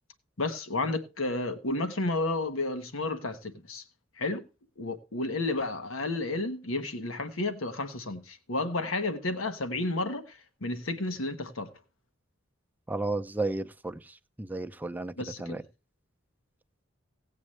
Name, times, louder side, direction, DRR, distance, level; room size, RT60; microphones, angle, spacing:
voice 1, 0.4-3.8 4.2-4.4 4.8-11.7 15.2-15.6, left 2 dB, 90° left, 1.2 m, -32 dB
voice 2, 12.9-14.0 14.4-15.1 15.4-15.6, right 2 dB, 10° right, 0.6 m, -32 dB
17.5 x 8.3 x 3.2 m
head